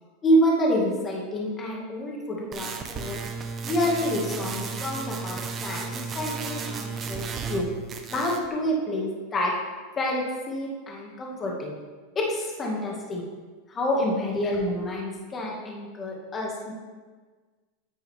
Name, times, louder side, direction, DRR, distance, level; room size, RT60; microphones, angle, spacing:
voice 1, 0.2-3.2 3.6-7.7 8.1-9.5 10.0-11.7 12.2-13.3 13.7-16.7, equal, 25° left, -2 dB, 1.9 m, -28 dB
sound 1, 2.5-7.6 7.9-8.5, right 5 dB, 30° right, 1.1 m, -34 dB
9.0 x 8.9 x 3.5 m, 1.4 s
hypercardioid pair, 120°, 0 cm